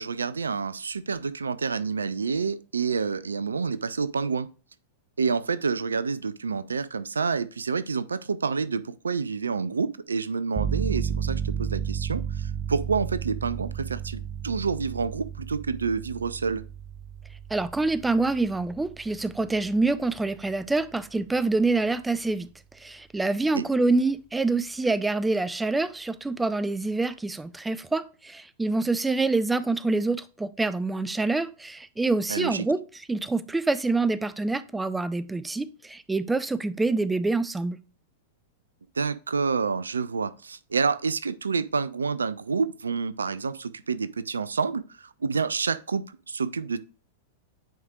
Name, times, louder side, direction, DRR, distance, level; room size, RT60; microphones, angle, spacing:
voice 1, 0.0-4.5 5.2-16.6 23.5-23.6 32.3-32.7 39.0-46.8, right 5 dB, 75° right, 0.4 m, -28 dB
sound 1, 10.6-21.1, right 7 dB, 25° right, 0.8 m, -33 dB
voice 2, 17.5-22.5 22.8-32.8 33.1-37.8, right 3 dB, 10° right, 0.4 m, -26 dB
9.2 x 4.9 x 2.3 m
figure-of-eight pair, 95°, 0 cm